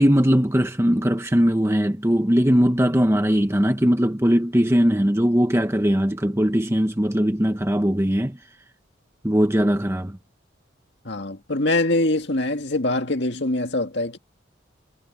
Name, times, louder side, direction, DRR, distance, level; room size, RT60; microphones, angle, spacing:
voice 1, 0.0-8.4 9.2-10.2, equal, 15° right, 1.1 m, -20 dB
voice 2, 11.1-14.2, left 2 dB, 60° left, 2.1 m, -23 dB
head